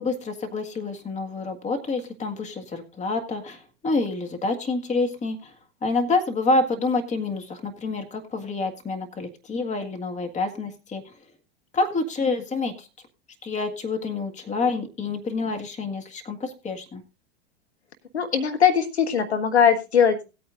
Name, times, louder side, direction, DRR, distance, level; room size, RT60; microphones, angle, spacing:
voice 1, 0.0-5.5 5.8-11.1 11.7-12.9 13.4-17.0, left 3 dB, 20° left, 5 dB, 1.8 m, -27 dB
voice 2, 18.1-20.2, left 7 dB, 90° left, 7 dB, 1.5 m, -20 dB
18.5 x 8.8 x 2.5 m, 0.28 s
hypercardioid pair, 95°, 32 cm